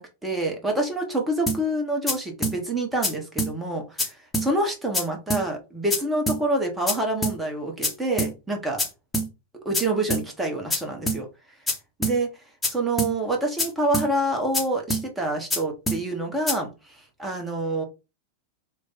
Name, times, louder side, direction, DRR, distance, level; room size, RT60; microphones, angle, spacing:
voice 1, 0.0-8.9 9.6-11.3 12.0-12.3 12.7-17.8, right 1 dB, 10° right, 1 dB, 1.1 m, -27 dB
sound 1, 1.5-1.6 2.1-2.2 2.4-2.6 3.0-3.1 3.4-3.5 4.0-4.1 4.3-4.5 4.9-5.0 5.3-5.4 5.9-6.0 6.3-6.4 6.9-7.0 7.2-7.4 7.8-7.9 8.2-8.3 8.8-8.9 9.1-9.3 9.7-9.8 10.1-10.2 10.7-10.8 11.1-11.2 11.7-11.8 12.0-12.2 12.6-12.7 13.0-13.1 13.6-13.7 13.9-14.1 14.5-14.6 14.9-15.0 15.5-15.6 15.9-16.0 16.5-16.6, equal, 10° left, 1.0 m, -25 dB
3.2 x 2.2 x 4.1 m, 0.28 s
figure-of-eight pair, 90°, 0 cm